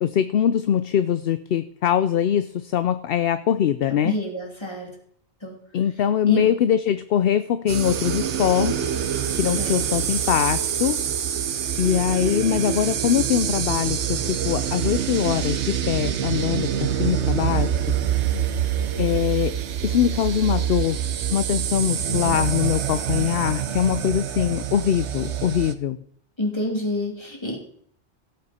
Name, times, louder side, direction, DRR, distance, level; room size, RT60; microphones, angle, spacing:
voice 1, 0.0-4.2 5.7-9.1 9.4-11.0 11.8-17.8 19.0-19.5 19.8-21.0 21.3-26.0, left 9 dB, 60° left, 12 dB, 0.7 m, -22 dB
voice 2, 4.0-4.9 5.4-5.6 6.3-6.5 9.6-9.8 22.1-22.4 24.4-24.5 26.4-27.6, left 1 dB, 25° left, 0 dB, 2.8 m, -28 dB
sound 1, 7.7-25.7, right 9 dB, 75° right, 1.1 m, -26 dB
17.0 x 7.7 x 4.3 m, 0.63 s
omnidirectional pair, 1.2 m